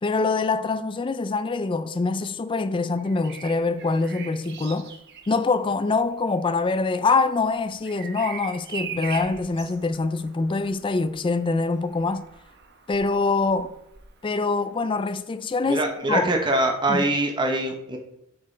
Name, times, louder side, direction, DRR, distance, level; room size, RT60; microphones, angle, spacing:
voice 1, 0.0-4.9 5.3-12.2 12.9-13.7 14.2-16.3 16.9-17.0, left 3 dB, 25° left, 0.3 m, -24 dB
Bird vocalization bird call bird song, 3.0-14.8 16.5-16.7, right 6 dB, 50° right, 0.9 m, -42 dB
voice 2, 15.7-18.0, right 2 dB, 20° right, 0.8 m, -23 dB
8.6 x 6.6 x 3.2 m
head